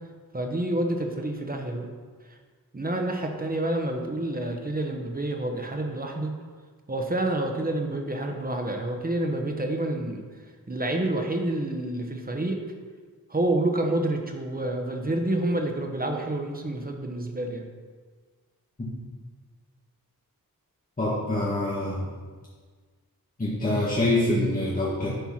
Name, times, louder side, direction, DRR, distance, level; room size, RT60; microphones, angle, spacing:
voice 1, 0.3-1.9 2.3-2.4 2.7-6.3 6.9-12.6 13.3-17.7, right 1 dB, 25° right, 2 dB, 1.0 m, -28 dB
voice 2, 21.0-22.1 23.4-25.1, left 1 dB, 20° left, -8 dB, 1.6 m, -25 dB
10.5 x 4.5 x 5.7 m, 1.5 s
wide cardioid pair, 125°, 37 cm